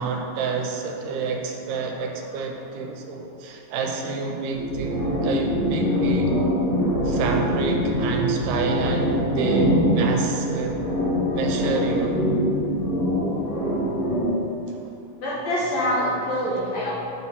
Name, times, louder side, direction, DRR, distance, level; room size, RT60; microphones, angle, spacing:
voice 1, 0.0-6.3 7.0-10.8 11.3-12.2 14.7-14.9, right 5 dB, 80° right, 2 dB, 2.1 m, -29 dB
sound 1, 4.5-14.3, equal, 90° left, 3.3 m, -23 dB
voice 2, 15.2-16.9, equal, 70° left, -6 dB, 1.7 m, -25 dB
6.1 x 3.0 x 5.6 m, 2.6 s
omnidirectional pair, 3.8 m